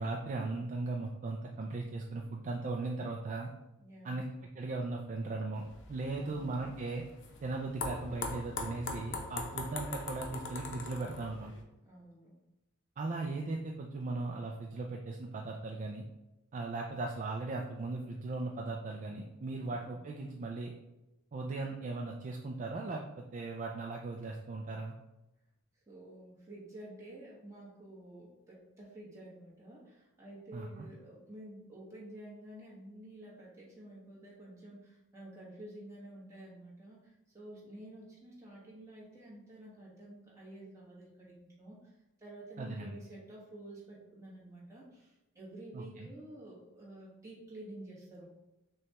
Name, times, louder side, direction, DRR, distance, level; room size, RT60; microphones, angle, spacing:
voice 1, 0.0-3.5 4.0-4.3 4.5-7.0 7.4-11.5 13.0-16.0 16.5-20.7 21.3-24.9 30.5-30.9 42.6-42.9 45.7-46.1, right 3 dB, 35° right, 0 dB, 0.3 m, -38 dB
voice 2, 3.8-4.3 6.2-6.8 11.8-12.4 25.9-41.9 42.2-48.2, right 1 dB, 15° right, -6 dB, 1.2 m, -50 dB
sound 1, 5.6-11.6, left 3 dB, 60° left, 0.6 m, -41 dB
6.2 x 2.3 x 2.9 m, 0.97 s
head